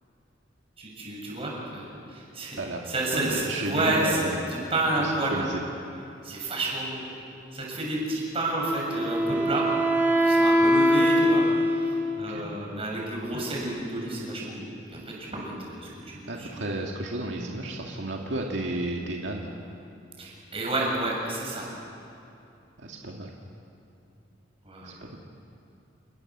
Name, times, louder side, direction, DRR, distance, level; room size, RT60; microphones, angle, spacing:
voice 1, 0.8-5.4 6.0-7.0 7.5-9.7 10.2-16.7 20.2-21.7 24.6-24.9, right 2 dB, 30° right, -2 dB, 6.7 m, -30 dB
voice 2, 3.1-4.4 5.0-5.6 12.3-12.4 16.3-19.5 22.8-23.3 24.8-25.2, right 2 dB, 75° right, 0 dB, 2.0 m, -32 dB
Wind instrument woodwind instrument, 8.6-12.2, equal, 10° right, 4.2 m, -22 dB
29.0 x 19.5 x 7.4 m, 2.7 s
head